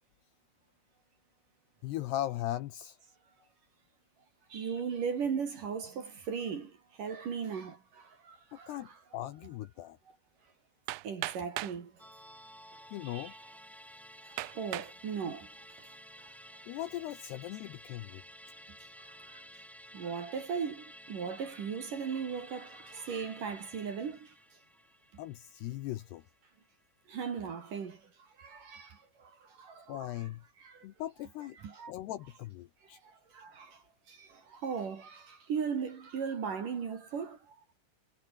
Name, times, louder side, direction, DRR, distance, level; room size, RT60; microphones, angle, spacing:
voice 1, 1.8-3.0 8.5-10.0 12.9-13.3 16.7-18.2 25.2-26.2 29.9-30.4 30.8-31.6 31.9-33.0, left 14 dB, 80° left, 2.4 m, -39 dB
voice 2, 4.5-6.7 7.0-9.0 11.0-11.9 13.0-13.4 14.3-15.5 19.2-19.4 19.9-24.3 27.1-28.0 28.4-30.3 30.6-30.9 31.6-31.9 33.0-33.8 34.1-37.6, right 6 dB, 45° right, 3.6 m, -38 dB
Hammer, 10.9-11.8 12.7-12.8 13.4-13.5 14.4-15.0 15.6-16.0, right 19 dB, 85° right, 2.5 m, -39 dB
Musical instrument, 12.0-26.7 27.0-27.1, equal, ahead, 3.1 m, -53 dB
omnidirectional pair, 6.0 m